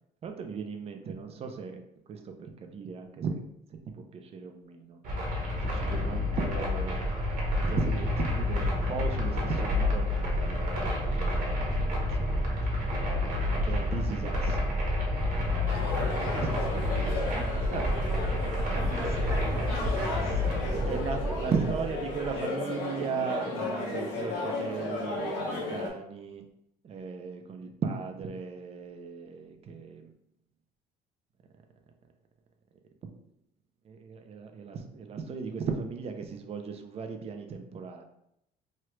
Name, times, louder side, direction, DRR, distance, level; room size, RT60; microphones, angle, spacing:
voice 1, 0.2-1.8 2.1-3.4 4.1-5.0 5.6-7.0 7.5-12.9 13.5-14.8 15.9-17.4 17.7-17.9 18.7-18.9 20.9-26.4 26.8-30.1 33.0-33.1 33.8-38.0, right 5 dB, 35° right, 4 dB, 0.5 m, -37 dB
sound 1, 5.0-22.4, left 1 dB, 55° right, 1.0 m, -29 dB
sound 2, 15.7-25.9, left 2 dB, 90° left, 0.8 m, -35 dB
voice 2, 16.2-16.7 17.0-18.4 18.8-21.4, right 1 dB, 15° right, -1 dB, 0.8 m, -41 dB
3.1 x 2.4 x 3.0 m, 0.78 s
cardioid pair, 110°, 17 cm